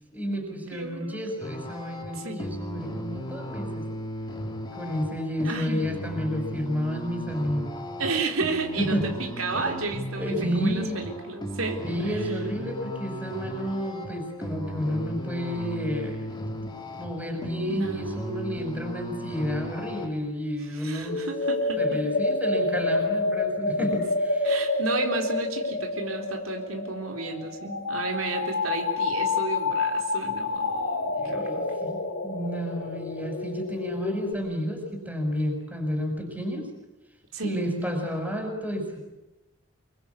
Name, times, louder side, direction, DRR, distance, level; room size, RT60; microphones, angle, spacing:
voice 1, 0.1-3.8 4.7-7.8 8.8-9.1 9.5-9.8 10.2-11.0 11.8-21.2 21.8-24.5 31.1-36.7 37.4-39.0, equal, 5° right, 4 dB, 6.0 m, -31 dB
voice 2, 0.7-1.2 2.1-2.4 5.4-5.8 8.0-12.1 17.7-18.2 20.7-22.0 24.4-31.7 37.3-37.7, right 3 dB, 80° right, 3 dB, 3.9 m, -32 dB
sound 1, 1.4-20.1, equal, 20° left, 3.2 m, -36 dB
sound 2, 21.1-34.3, left 3 dB, 55° left, 3.5 m, -28 dB
26.0 x 23.5 x 8.4 m, 0.95 s
head